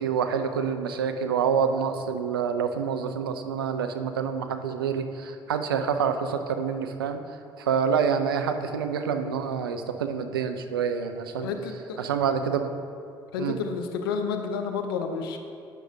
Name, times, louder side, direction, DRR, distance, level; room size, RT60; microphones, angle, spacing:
voice 1, 0.0-7.2 7.6-11.5 12.0-12.7 13.4-13.6, right 6 dB, 90° right, 8 dB, 0.4 m, -27 dB
voice 2, 11.4-12.1 13.3-15.4, left 5 dB, 80° left, 6 dB, 0.5 m, -30 dB
9.0 x 6.3 x 2.6 m, 2.5 s
hypercardioid pair, 55°, 12 cm